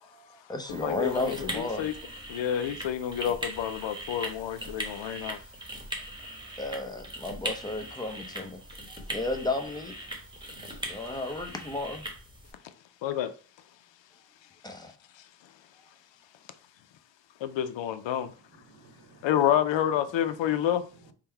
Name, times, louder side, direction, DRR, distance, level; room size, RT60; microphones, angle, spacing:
voice 1, 0.1-1.9 6.6-8.6 8.9-9.9 10.9-12.1 14.6-14.9, left 2 dB, 10° left, 0.6 m, -33 dB
voice 2, 0.7-1.9 2.3-5.4 13.0-13.3 17.4-18.3 19.2-20.9, left 10 dB, 75° left, 0.5 m, -28 dB
sound 1, 0.7-12.5, equal, 10° right, 1.0 m, -40 dB
voice 3, 18.2-19.6 20.3-20.7 21.0-21.1, right 3 dB, 45° right, 1.0 m, -56 dB
3.7 x 2.1 x 4.4 m
wide cardioid pair, 105°, 45 cm